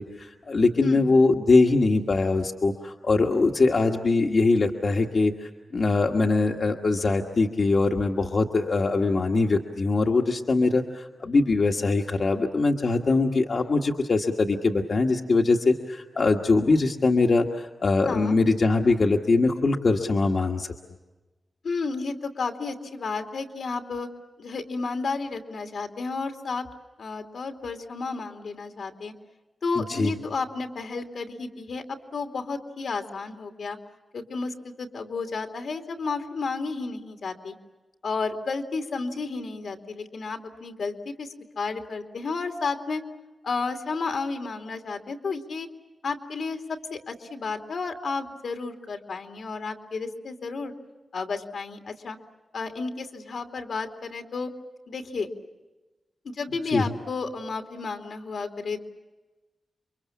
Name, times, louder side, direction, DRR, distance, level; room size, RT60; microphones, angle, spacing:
voice 1, 0.0-20.7 29.8-30.1 56.7-56.9, left 3 dB, 55° left, 2 dB, 1.5 m, -22 dB
voice 2, 18.0-18.4 21.6-24.1 24.4-26.7 27.0-29.1 29.6-33.8 34.1-37.5 38.0-41.3 41.6-43.0 43.4-45.7 46.0-50.7 51.1-52.2 52.5-54.5 54.9-55.3 56.2-58.9, left 4 dB, 80° left, 5 dB, 2.6 m, -32 dB
29.5 x 24.0 x 7.2 m, 1.1 s
wide cardioid pair, 115°, 0 cm